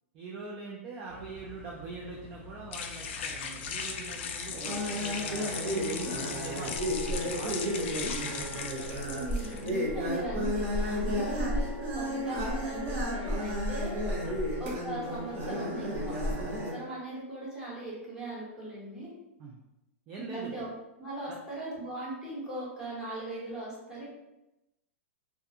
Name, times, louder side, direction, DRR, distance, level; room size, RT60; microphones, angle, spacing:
voice 1, 0.1-9.0 14.2-14.4 19.4-19.6 20.1-20.6 21.3-21.4, right 4 dB, 25° right, -3 dB, 0.3 m, -42 dB
sound 1, 1.1-9.7, left 6 dB, 55° left, 0.3 m, -38 dB
sound 2, 4.5-16.7, equal, 50° right, 1.2 m, -32 dB
voice 2, 9.1-14.0 14.6-19.1 20.2-20.7 21.0-24.1, right 2 dB, 10° right, -8 dB, 0.9 m, -39 dB
2.4 x 2.2 x 2.7 m, 0.93 s
hypercardioid pair, 155°, 7 cm